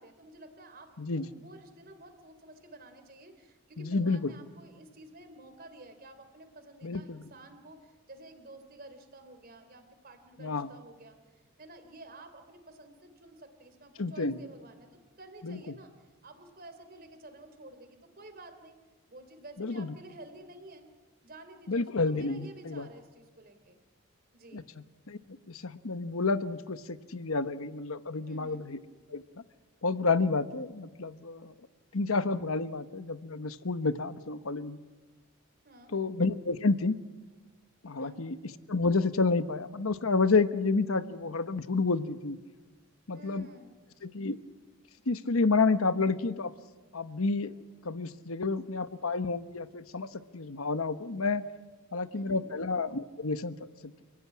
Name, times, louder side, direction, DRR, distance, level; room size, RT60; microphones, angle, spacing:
voice 1, 0.0-20.9 21.2-23.8 24.3-24.7 28.2-28.7 35.6-35.9 38.0-38.2 43.1-43.7 52.1-52.5, right 2 dB, 45° right, 8 dB, 3.4 m, -51 dB
voice 2, 3.8-4.3 6.8-7.2 10.4-10.7 14.0-14.4 15.4-15.6 19.6-19.9 21.7-22.9 24.5-24.6 25.1-25.2 25.5-28.8 29.1-29.2 29.8-31.5 31.9-34.8 35.9-36.9 37.8-38.4 38.7-42.4 43.1-43.5 44.1-44.4 45.1-46.5 46.9-47.5 47.8-51.4 51.9-53.5, left 3 dB, 85° left, 12 dB, 1.1 m, -29 dB
29.5 x 16.0 x 9.7 m, 1.3 s
head